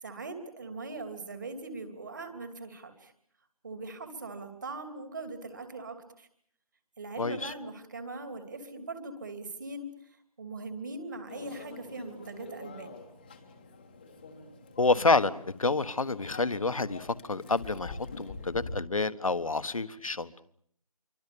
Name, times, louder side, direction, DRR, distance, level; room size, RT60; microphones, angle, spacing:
voice 1, 0.0-3.1 3.6-6.3 7.0-13.0, right 3 dB, 30° right, 8 dB, 3.0 m, -41 dB
voice 2, 7.2-7.5 14.8-20.3, left 3 dB, 60° left, 13 dB, 1.5 m, -28 dB
Microwave oven, 11.3-18.8, left 3 dB, 15° left, 1.4 m, -46 dB
27.5 x 24.5 x 6.9 m, 0.67 s
figure-of-eight pair, 170°, 20 cm